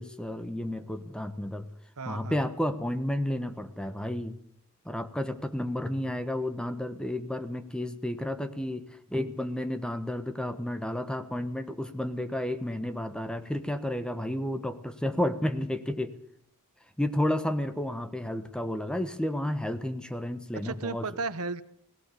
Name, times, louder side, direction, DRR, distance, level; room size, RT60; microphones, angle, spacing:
voice 1, 0.0-1.7 2.1-4.4 4.8-16.1 17.0-21.1, left 1 dB, 5° left, 10 dB, 1.2 m, -31 dB
voice 2, 2.0-2.4 20.6-21.6, right 4 dB, 75° right, 14 dB, 1.1 m, -34 dB
18.0 x 17.5 x 8.3 m, 0.70 s
head